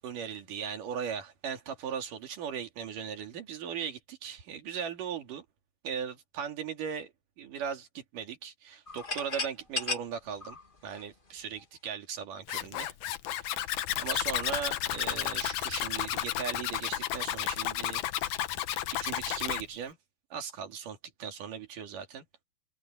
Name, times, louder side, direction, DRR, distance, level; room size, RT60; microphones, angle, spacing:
voice 1, 0.0-5.5 5.8-12.9 13.3-13.7 14.0-18.4 19.0-20.0 20.3-22.2, right 7 dB, 80° right, 4.0 m, -38 dB
sound 1, 8.9-11.6, left 3 dB, 20° left, 1.7 m, -36 dB
Zipper (clothing), 12.5-19.6, left 13 dB, 75° left, 2.3 m, -32 dB
omnidirectional pair, 3.7 m